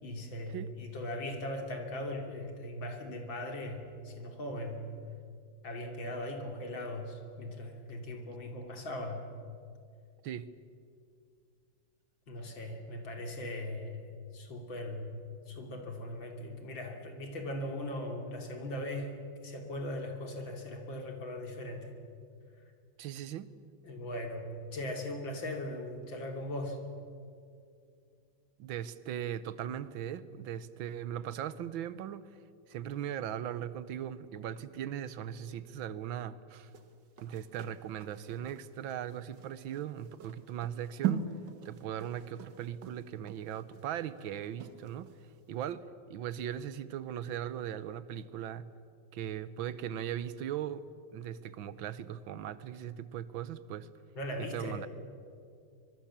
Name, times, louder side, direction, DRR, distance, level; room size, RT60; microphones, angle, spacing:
voice 1, 0.0-4.9 5.6-9.2 12.3-22.0 23.8-24.5 24.7-26.8 54.2-54.8, left 1 dB, 80° left, 3 dB, 3.5 m, -39 dB
voice 2, 23.0-23.5 28.6-32.3 32.7-36.7 37.2-41.3 41.7-45.1 45.5-48.7 49.1-50.8 51.1-53.9 54.4-54.9, right 10 dB, 85° right, 15 dB, 1.7 m, -39 dB
sound 1, 36.7-45.2 45.6-45.7, right 9 dB, 65° right, 2.1 m, -40 dB
25.0 x 22.0 x 7.4 m, 2.4 s
omnidirectional pair, 2.1 m